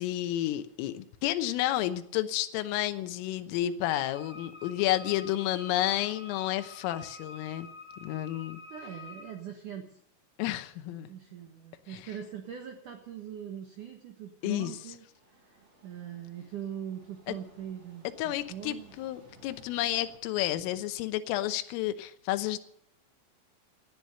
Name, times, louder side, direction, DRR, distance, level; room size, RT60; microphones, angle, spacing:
voice 1, 0.0-7.7 8.0-8.6 10.4-11.1 11.9-12.1 14.4-14.8 17.3-17.4 18.2-22.6, left 14 dB, 85° left, 10 dB, 3.6 m, -31 dB
Wind instrument woodwind instrument, 3.9-9.4, left 3 dB, ahead, 4.8 m, -48 dB
voice 2, 8.7-10.0 10.9-15.0 15.5-18.9, right 9 dB, 85° right, 4 dB, 1.7 m, -42 dB
sound 1, 15.1-20.2, right 1 dB, 30° right, 8.1 m, -59 dB
17.5 x 12.0 x 6.8 m, 0.73 s
omnidirectional pair, 5.7 m